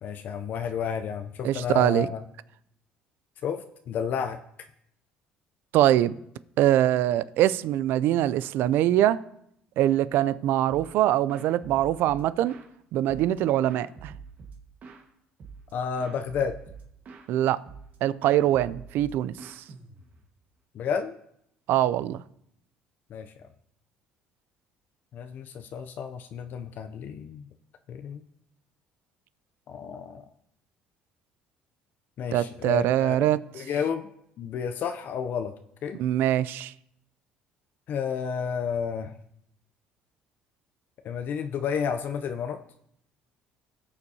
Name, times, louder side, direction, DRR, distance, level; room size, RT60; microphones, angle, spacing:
voice 1, 0.0-2.2 3.4-4.4 15.7-16.6 20.7-21.2 23.1-23.3 25.1-27.5 27.9-28.3 29.7-30.2 32.2-33.3 33.5-34.1 34.4-36.0 37.9-39.1 41.0-42.6, left 7 dB, 60° left, 0.5 m, -31 dB
voice 2, 1.4-2.1 5.7-6.2 6.6-9.2 9.8-12.6 12.9-14.1 17.3-17.6 18.0-19.6 21.7-22.2 32.3-33.4 36.0-36.7, right 12 dB, 75° right, 0.4 m, -23 dB
sound 1, 10.7-11.0 11.3-12.7 13.1-15.1 15.4-15.7 16.0-17.3 17.7-18.0 18.2-20.3, right 5 dB, 55° right, 1.5 m, -46 dB
18.0 x 6.9 x 2.8 m
supercardioid pair, 90°, 4 cm